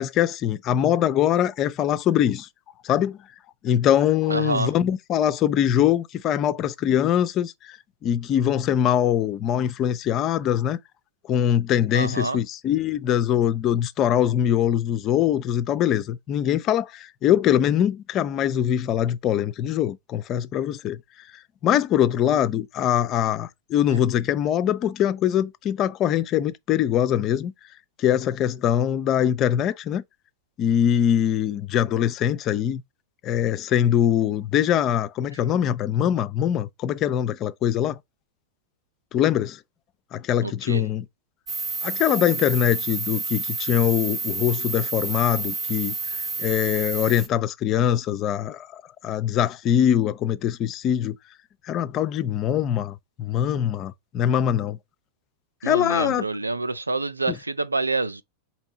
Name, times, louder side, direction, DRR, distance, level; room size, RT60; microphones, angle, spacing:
voice 1, 0.0-2.5 2.8-3.2 3.6-10.8 11.3-21.3 21.6-27.5 28.0-30.0 30.6-32.8 33.2-38.0 39.1-39.6 40.1-41.1 41.8-46.0 46.4-51.2 51.6-54.8 55.6-56.2 57.3-57.4, left 10 dB, 35° left, 0.4 m, -23 dB
voice 2, 4.3-4.7 11.9-12.4 40.4-40.8 55.6-58.2, right 3 dB, 80° right, 0.4 m, -27 dB
sound 1, 41.5-47.3, right 3 dB, 25° right, 0.7 m, -29 dB
4.3 x 2.8 x 4.1 m
figure-of-eight pair, 90°, 0 cm